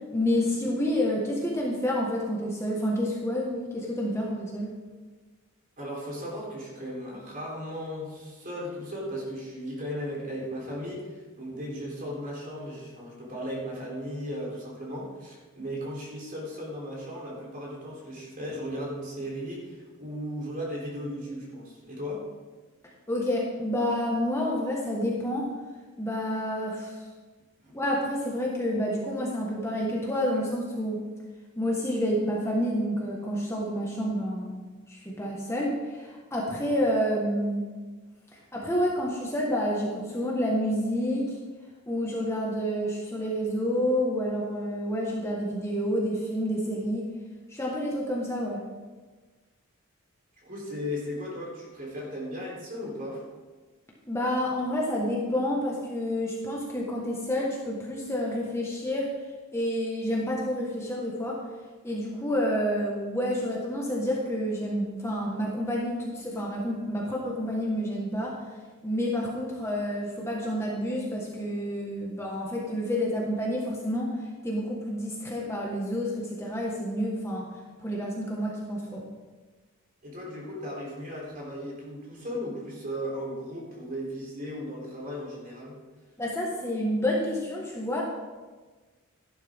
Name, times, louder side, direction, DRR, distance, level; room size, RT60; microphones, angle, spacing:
voice 1, 0.1-4.7 23.1-25.5 26.0-27.0 27.7-31.0 31.6-34.5 34.9-37.7 38.5-41.4 41.9-47.1 47.5-48.6 54.1-59.1 59.5-61.4 61.8-68.4 68.8-77.5 77.8-79.0 86.2-88.0, equal, 15° left, -3 dB, 1.6 m, -29 dB
voice 2, 5.8-22.3 27.6-27.7 50.4-53.3 80.0-85.8, equal, 40° right, -3 dB, 3.8 m, -36 dB
13.0 x 11.5 x 3.7 m, 1.3 s
head